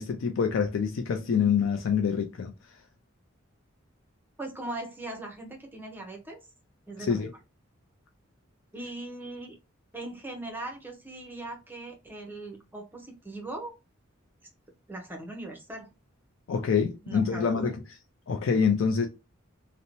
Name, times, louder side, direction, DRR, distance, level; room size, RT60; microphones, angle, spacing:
voice 1, 0.0-2.5 7.1-7.3 16.5-17.8 18.3-19.1, left 6 dB, 70° left, 0.4 m, -26 dB
voice 2, 4.4-6.4 6.9-7.2 8.7-9.6 9.9-13.7 14.9-15.9 17.0-17.7, right 2 dB, 10° right, 0.6 m, -39 dB
2.6 x 2.0 x 2.8 m
head